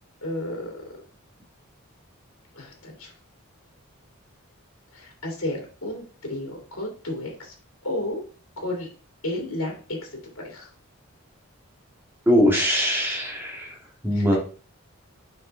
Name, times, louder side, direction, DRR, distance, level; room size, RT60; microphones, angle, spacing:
voice 1, 0.2-0.8 2.5-3.1 4.9-6.0 6.3-7.5 7.8-8.2 8.6-8.9 9.2-9.8 10.4-10.7 14.1-14.4, left 1 dB, 70° left, 0 dB, 2.4 m, -32 dB
voice 2, 12.3-13.8 14.0-14.4, equal, 10° right, -3 dB, 2.1 m, -21 dB
6.8 x 5.3 x 3.4 m, 0.39 s
head